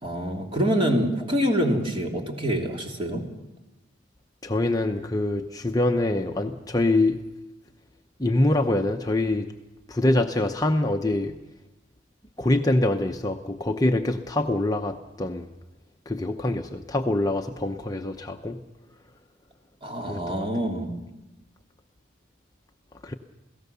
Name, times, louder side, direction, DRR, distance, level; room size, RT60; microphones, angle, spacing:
voice 1, 0.0-3.3 19.8-20.9, equal, 30° right, 1 dB, 2.9 m, -26 dB
voice 2, 4.4-7.2 8.2-9.5 9.9-11.3 12.4-15.5 16.1-18.6 20.0-20.5 23.0-23.1, left 2 dB, 20° left, 4 dB, 0.7 m, -25 dB
28.5 x 17.5 x 6.8 m, 1.0 s
head